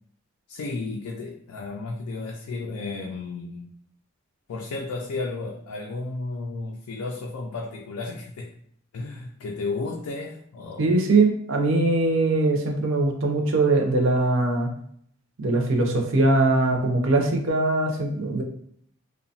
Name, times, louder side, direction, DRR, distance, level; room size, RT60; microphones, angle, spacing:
voice 1, 0.5-3.7 4.5-8.5 8.9-10.9, left 3 dB, 90° left, 0 dB, 0.4 m, -33 dB
voice 2, 10.8-14.7 15.4-18.4, right 2 dB, 65° right, 3 dB, 0.5 m, -21 dB
2.8 x 2.1 x 2.7 m, 0.66 s
head